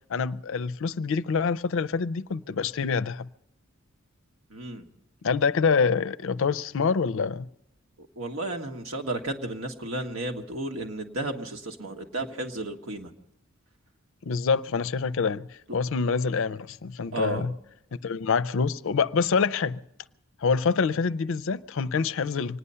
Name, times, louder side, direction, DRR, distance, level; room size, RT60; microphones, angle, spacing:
voice 1, 0.1-3.3 5.2-7.5 14.2-15.5 15.7-17.5 18.0-19.8 20.4-22.6, left 5 dB, 65° left, 0.5 m, -26 dB
voice 2, 4.5-4.9 8.2-13.1 17.1-17.5, right 2 dB, 70° right, 1.5 m, -33 dB
25.5 x 9.8 x 5.6 m
head